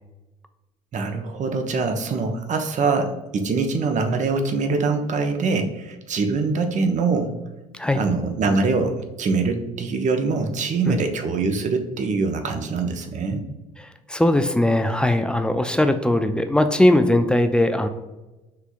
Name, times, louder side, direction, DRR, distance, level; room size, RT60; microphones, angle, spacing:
voice 1, 0.9-7.4 7.9-13.5, right 4 dB, 40° right, 6 dB, 0.7 m, -23 dB
voice 2, 13.8-17.9, left 1 dB, 5° left, 8 dB, 0.4 m, -20 dB
5.7 x 3.4 x 2.5 m, 1.1 s
figure-of-eight pair, 55°, 20 cm